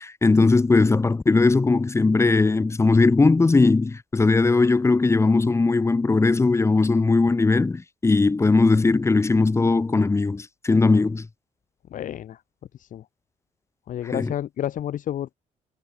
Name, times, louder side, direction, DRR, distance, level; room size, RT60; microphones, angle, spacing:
voice 1, 0.0-11.2 14.1-14.3, left 3 dB, 20° left, 1.0 m, -19 dB
voice 2, 11.9-12.4 12.7-13.1 13.9-15.3, left 11 dB, 70° left, 2.4 m, -30 dB
cardioid pair, 100°, 14 cm